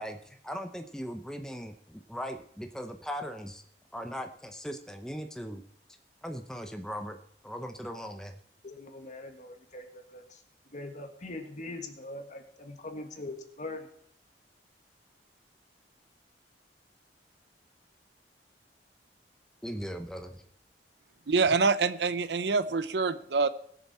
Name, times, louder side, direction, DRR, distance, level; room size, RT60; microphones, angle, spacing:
voice 1, 0.0-3.6 3.9-5.6 6.2-7.2 7.4-8.3 19.6-20.4, equal, 5° left, 5 dB, 0.7 m, -39 dB
voice 2, 8.6-13.9, left 2 dB, 45° left, 6 dB, 1.7 m, -42 dB
voice 3, 21.3-23.5, right 4 dB, 70° right, 14 dB, 0.7 m, -26 dB
20.0 x 7.0 x 4.3 m, 0.67 s
head